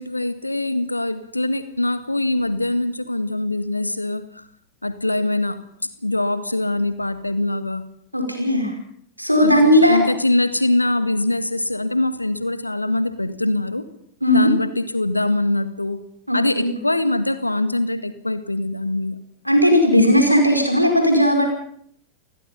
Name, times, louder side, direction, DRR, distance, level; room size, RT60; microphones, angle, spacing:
voice 1, 0.0-4.4 4.8-5.6 6.0-7.8 9.4-13.9 14.3-16.0 16.3-19.2, left 1 dB, 85° left, 12 dB, 1.7 m, -23 dB
voice 2, 8.1-8.7 9.2-10.0 14.2-14.5 16.3-16.7 19.5-21.4, equal, 90° right, 3 dB, 5.3 m, -16 dB
29.0 x 16.5 x 5.7 m, 0.65 s
figure-of-eight pair, 90°, 0 cm